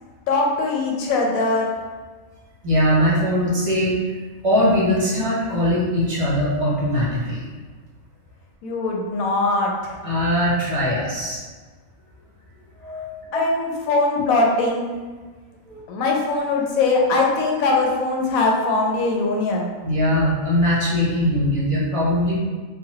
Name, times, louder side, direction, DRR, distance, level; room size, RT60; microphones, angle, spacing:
voice 1, 0.3-1.7 8.6-10.0 13.3-14.9 15.9-19.7, left 3 dB, 80° left, 0 dB, 1.0 m, -21 dB
voice 2, 2.6-4.0 4.4-7.5 10.0-11.4 12.8-13.4 15.7-15.8 19.8-22.4, equal, 35° right, -7 dB, 0.6 m, -21 dB
3.0 x 2.2 x 2.8 m, 1.4 s
omnidirectional pair, 1.4 m